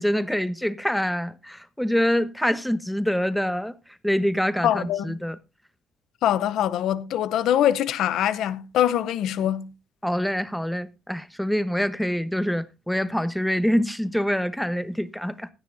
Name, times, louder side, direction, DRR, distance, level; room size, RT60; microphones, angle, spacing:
voice 1, 0.0-3.8 4.0-5.4 10.0-15.5, equal, 5° left, 1.0 m, -25 dB
voice 2, 4.6-5.2 6.2-9.7, left 11 dB, 85° left, 0.8 m, -23 dB
16.5 x 10.0 x 2.7 m
cardioid pair, 90°, 0 cm